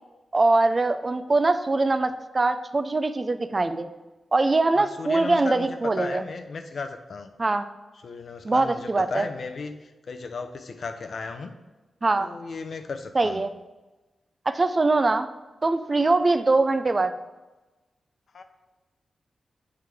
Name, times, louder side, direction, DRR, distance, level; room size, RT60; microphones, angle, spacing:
voice 1, 0.3-3.9 4.3-6.2 7.4-7.7 8.4-9.3 12.0-12.3 13.2-13.5 14.5-15.3 15.6-17.1, right 3 dB, 35° right, 11 dB, 0.4 m, -22 dB
voice 2, 4.7-7.3 8.0-9.8 10.1-11.6 12.1-13.5 18.3-18.4, left 4 dB, 65° left, 7 dB, 0.5 m, -35 dB
7.6 x 4.7 x 3.4 m, 1.1 s
cardioid pair, 75°, 0 cm